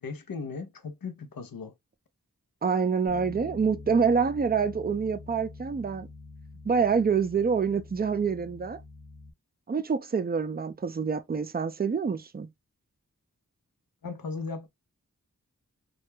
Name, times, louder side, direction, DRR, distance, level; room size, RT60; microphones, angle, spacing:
voice 1, 0.0-1.7 14.0-14.7, left 4 dB, 85° left, 0.6 m, -37 dB
voice 2, 2.6-6.1 6.7-8.8 9.7-12.5, right 5 dB, 30° right, 0.4 m, -26 dB
Bass guitar, 3.1-9.3, left 3 dB, 30° left, 0.7 m, -46 dB
2.3 x 2.1 x 3.1 m
wide cardioid pair, 45°, 34 cm